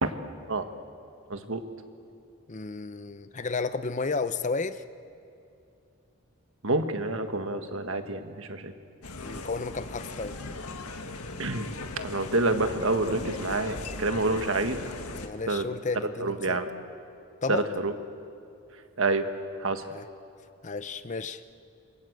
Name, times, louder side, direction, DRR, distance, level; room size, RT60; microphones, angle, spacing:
voice 1, 1.3-1.6 6.6-8.7 11.4-11.7 12.0-14.8 15.5-15.6 16.2-16.7 17.5-17.9 19.0-19.3 19.6-19.8, right 2 dB, 60° right, 1.6 m, -27 dB
voice 2, 2.5-4.8 9.2-10.4 15.1-16.6 17.4-17.7 19.9-20.1 20.6-21.4, left 4 dB, 35° left, 0.7 m, -32 dB
sound 1, 9.0-15.3, left 2 dB, 85° left, 1.8 m, -38 dB
27.5 x 23.0 x 8.0 m
head